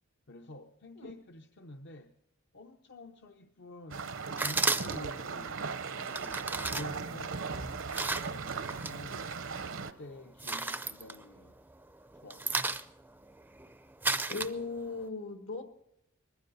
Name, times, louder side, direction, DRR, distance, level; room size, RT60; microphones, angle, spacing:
voice 1, 0.3-2.1 2.5-5.6 5.9-7.4 7.9-9.4 9.8-11.6 12.1-12.6, left 2 dB, 55° left, 5 dB, 0.8 m, -49 dB
sound 1, 3.9-9.9, right 5 dB, 70° right, 0.8 m, -38 dB
sound 2, 4.4-5.2 6.0-9.0 9.3-9.9 10.2-11.7 12.0-15.0, right 3 dB, 10° right, 0.5 m, -34 dB
voice 2, 14.3-15.6, left 3 dB, 75° left, 7 dB, 1.7 m, -37 dB
21.0 x 15.0 x 4.1 m, 0.80 s
head